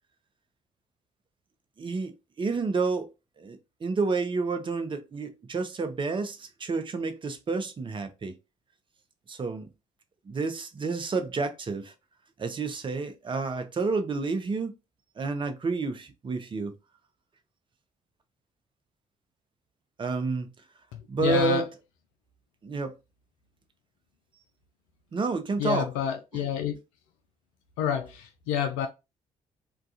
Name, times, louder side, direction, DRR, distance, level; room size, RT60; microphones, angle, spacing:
voice 1, 1.8-3.1 3.4-8.4 9.3-9.7 10.3-11.9 12.4-14.7 15.2-16.7 20.0-20.5 21.1-21.7 22.6-22.9 25.1-25.9 26.3-26.4, right 4 dB, 30° right, 0.6 m, -30 dB
voice 2, 21.2-21.6 25.6-26.8 27.8-28.9, left 8 dB, 70° left, 0.4 m, -28 dB
2.3 x 2.3 x 2.6 m
figure-of-eight pair, 45°, 17 cm